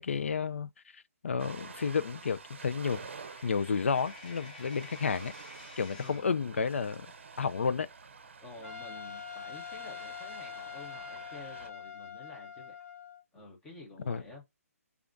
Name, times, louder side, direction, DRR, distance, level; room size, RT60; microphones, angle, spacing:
voice 1, 0.0-3.1 3.4-5.3 5.8-7.1 7.4-7.9 14.1-14.2, left 5 dB, 55° left, 0.4 m, -31 dB
Ocean, 1.4-11.7, right 5 dB, 50° right, 0.6 m, -49 dB
Coin (dropping), 2.8-6.4, left 3 dB, 35° left, 1.2 m, -52 dB
voice 2, 6.0-6.6 8.4-12.8 13.3-14.5, left 2 dB, 5° left, 0.6 m, -50 dB
Trumpet, 8.6-13.2, left 7 dB, 70° left, 1.5 m, -44 dB
6.9 x 2.4 x 2.5 m
hypercardioid pair, 175°, 8 cm